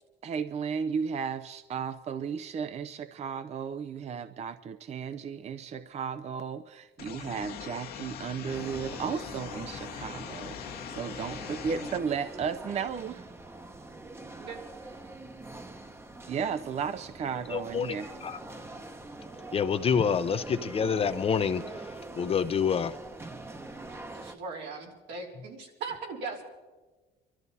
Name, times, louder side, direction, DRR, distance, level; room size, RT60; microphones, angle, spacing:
voice 1, 0.2-13.3 16.3-18.2, right 6 dB, 40° right, 11 dB, 0.5 m, -34 dB
sound 1, 7.0-12.0, left 9 dB, 65° left, 1.3 m, -41 dB
sound 2, 8.4-24.4, right 2 dB, 15° right, 0.9 m, -44 dB
voice 2, 17.5-18.0 18.2-18.4 19.5-21.6 22.2-22.9, left 6 dB, 35° left, 12 dB, 0.6 m, -27 dB
voice 3, 24.1-26.4, right 4 dB, 85° right, -1 dB, 3.4 m, -39 dB
25.0 x 12.5 x 4.1 m, 1.3 s
cardioid pair, 110°, 17 cm